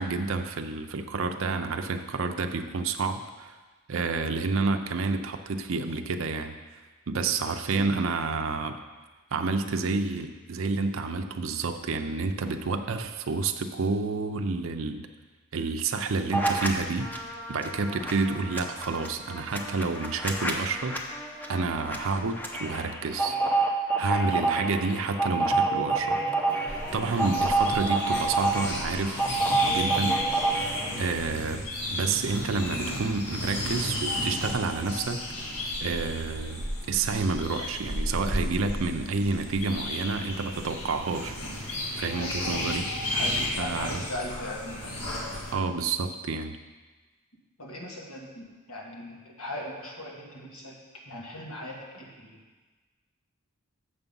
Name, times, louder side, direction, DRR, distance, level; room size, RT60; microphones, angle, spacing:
voice 1, 0.0-3.6 3.9-6.6 7.1-8.8 9.3-15.1 15.5-17.1 17.5-21.0 21.5-23.4 24.0-30.1 31.0-35.2 35.8-41.4 42.0-42.9 43.6-44.0 45.5-46.6, right 4 dB, 65° right, 6 dB, 0.5 m, -29 dB
sound 1, 16.3-16.7 17.0-31.1, right 3 dB, 10° left, 0.7 m, -28 dB
voice 2, 23.2-23.6 24.1-24.9 30.0-30.2 42.2-42.6 43.1-45.1 47.6-50.8 51.1-52.4, left 1 dB, 75° left, -2 dB, 1.7 m, -39 dB
sound 2, 26.7-45.5, left 1 dB, 90° left, 1.7 m, -33 dB
7.0 x 6.7 x 5.4 m, 1.3 s
head